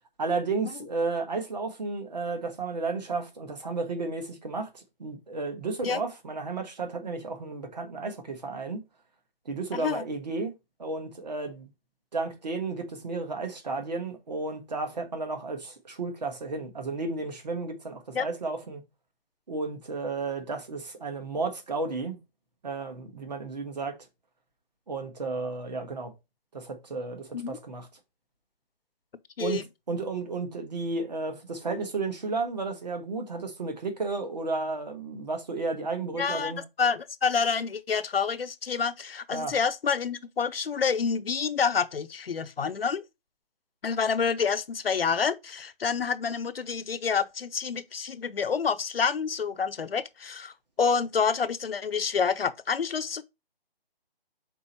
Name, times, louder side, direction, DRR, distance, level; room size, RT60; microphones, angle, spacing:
voice 1, 0.2-8.8 9.4-11.7 12.1-18.8 19.5-22.2 22.6-24.0 24.9-26.1 26.5-27.9 29.4-29.6 29.9-36.6 39.3-39.6, right 3 dB, 45° right, 1.6 m, -33 dB
voice 2, 9.7-10.0 18.1-18.3 27.3-27.6 29.4-29.7 36.2-43.0 43.8-53.2, left 6 dB, 75° left, 0.8 m, -28 dB
5.3 x 4.2 x 4.4 m
hypercardioid pair, 175°, 30 cm